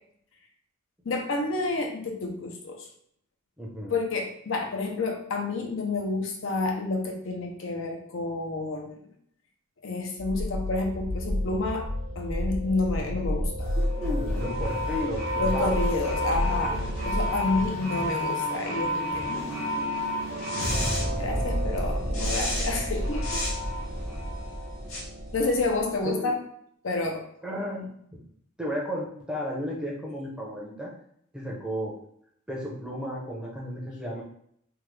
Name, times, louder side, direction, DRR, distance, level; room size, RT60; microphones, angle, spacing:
voice 1, 1.0-2.9 3.9-9.0 9.8-11.9 12.2-13.8 15.4-16.8 17.1-20.0 21.2-23.4 25.3-26.4 26.8-27.2, left 3 dB, 65° left, 2 dB, 0.6 m, -29 dB
voice 2, 3.6-3.9 13.7-15.8 26.0-26.3 27.4-28.2 28.6-30.9 31.3-32.0 32.5-34.2, equal, 5° right, -4 dB, 0.7 m, -33 dB
sound 1, 10.2-17.7, equal, 40° right, 0.8 m, -31 dB
Piano, 11.3-25.7, right 1 dB, 70° right, 0.8 m, -38 dB
sound 2, 13.6-26.0, left 1 dB, 85° left, 1.1 m, -31 dB
3.4 x 2.3 x 3.2 m, 0.68 s
head